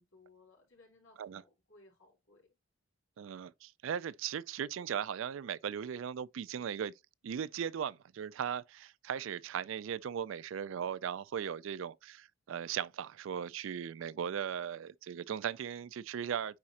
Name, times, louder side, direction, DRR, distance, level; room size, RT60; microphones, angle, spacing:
voice 1, 0.0-2.5, left 2 dB, 80° left, 4.5 m, -62 dB
voice 2, 3.2-6.9 7.2-16.6, right 8 dB, 75° right, 0.3 m, -38 dB
9.5 x 4.2 x 2.8 m
head